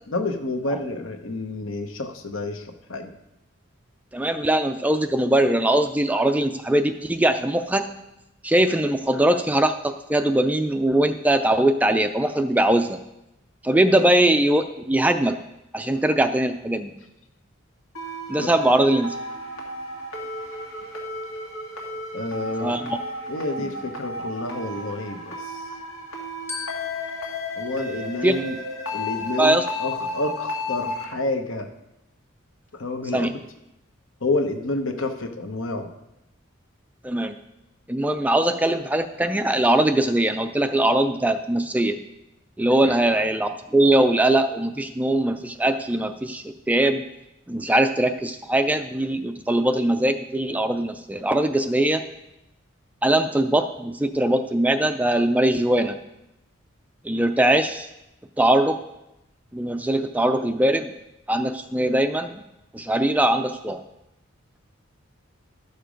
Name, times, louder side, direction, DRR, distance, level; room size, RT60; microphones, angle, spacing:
voice 1, 0.1-3.1 18.4-18.5 22.1-22.8 23.3-25.6 27.6-28.5 28.9-31.7 32.7-33.3 34.2-35.9 42.8-42.9, left 2 dB, 70° left, 6 dB, 1.0 m, -29 dB
voice 2, 4.1-7.9 8.4-13.0 13.6-15.4 15.7-16.9 18.3-19.1 22.6-23.0 28.2-28.4 29.4-29.6 33.1-33.3 37.0-37.3 37.9-42.0 42.6-47.0 47.5-52.0 53.0-56.0 57.0-57.9 58.4-58.8 59.5-60.9 61.3-62.3 62.7-63.8, right 1 dB, 5° right, 8 dB, 0.3 m, -21 dB
sound 1, 17.9-31.0, left 1 dB, 90° left, 2.0 m, -33 dB
Glockenspiel, 26.5-29.0, left 6 dB, 10° left, 0.9 m, -39 dB
12.5 x 6.7 x 5.1 m, 0.91 s
head